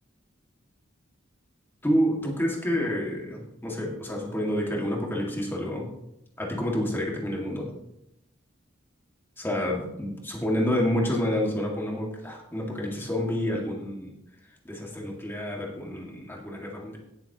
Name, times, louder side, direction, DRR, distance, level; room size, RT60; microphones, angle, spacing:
voice 1, 1.8-5.9 6.4-7.7 9.4-14.1 14.6-17.0, equal, 10° left, -2 dB, 2.0 m, -28 dB
18.0 x 7.7 x 3.0 m, 0.85 s
head